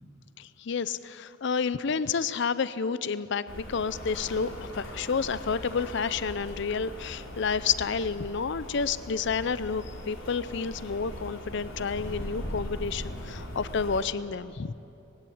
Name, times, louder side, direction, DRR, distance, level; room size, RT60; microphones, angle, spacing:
voice 1, 0.4-14.7, left 5 dB, 60° left, 16 dB, 0.5 m, -30 dB
Rain, 3.5-14.0, equal, 75° left, 3.8 m, -40 dB
19.5 x 16.5 x 8.7 m, 2.8 s
head